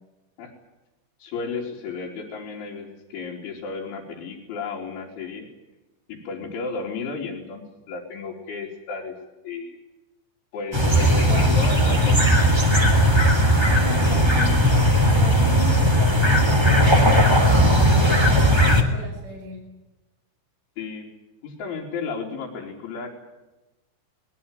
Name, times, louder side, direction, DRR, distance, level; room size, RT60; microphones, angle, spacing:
voice 1, 1.2-5.5 6.1-9.2 9.4-9.8 10.5-12.6 14.0-14.3 20.8-21.1 21.4-23.2, left 4 dB, 80° left, -4 dB, 5.8 m, -33 dB
sound 1, 10.7-18.8, equal, 10° right, 2.1 m, -17 dB
voice 2, 11.2-12.1 13.6-19.6, right 2 dB, 35° right, 1 dB, 6.6 m, -37 dB
24.0 x 21.0 x 9.1 m, 1.0 s
omnidirectional pair, 5.4 m